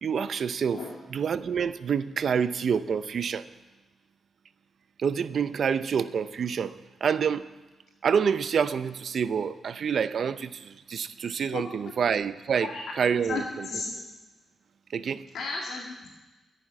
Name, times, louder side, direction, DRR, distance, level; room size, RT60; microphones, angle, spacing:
voice 1, 0.0-0.8 1.1-3.4 5.0-6.8 7.0-7.5 8.0-13.7 14.9-15.2, right 7 dB, 60° right, 0.6 m, -27 dB
voice 2, 13.3-14.0 15.3-16.1, left 4 dB, 80° left, 2.7 m, -34 dB
10.0 x 10.0 x 9.5 m
cardioid pair, 100°, 0 cm